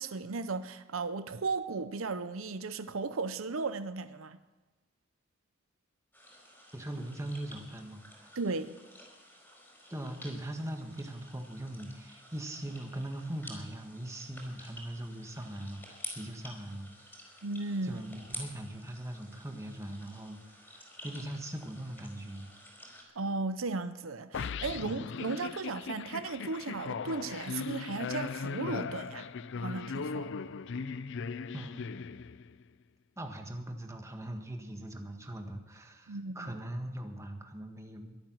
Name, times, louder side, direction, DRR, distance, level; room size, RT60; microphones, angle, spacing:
voice 1, 0.0-4.4 8.4-8.8 17.4-18.0 23.2-30.3 36.1-36.5, right 3 dB, 85° right, 0.7 m, -36 dB
sound 1, 6.1-23.0, left 1 dB, 10° left, 4.7 m, -50 dB
voice 2, 6.7-8.3 9.9-16.9 17.2-17.3 17.8-22.5 31.5-31.9 33.2-38.2, right 1 dB, 15° right, 1.7 m, -41 dB
sound 2, 24.3-32.6, left 5 dB, 65° left, 0.5 m, -38 dB
23.0 x 8.9 x 6.3 m
head